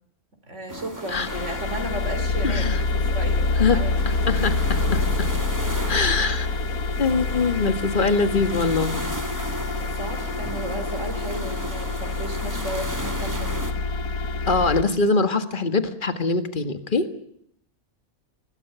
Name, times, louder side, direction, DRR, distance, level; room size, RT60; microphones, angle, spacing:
voice 1, 0.5-2.7 2.9-4.0 5.7-6.0 9.8-13.7, right 1 dB, 60° right, 6 dB, 4.1 m, -34 dB
sound 1, 0.7-13.7, right 1 dB, 15° right, 2.2 m, -36 dB
sound 2, 1.1-14.8, left 3 dB, 90° left, 1.7 m, -26 dB
voice 2, 2.4-2.8 3.6-3.8 4.3-5.3 5.9-6.5 7.0-9.0 9.4-9.5 14.5-17.1, left 4 dB, 35° left, 8 dB, 1.9 m, -23 dB
25.0 x 19.0 x 8.2 m, 0.68 s
omnidirectional pair, 1.4 m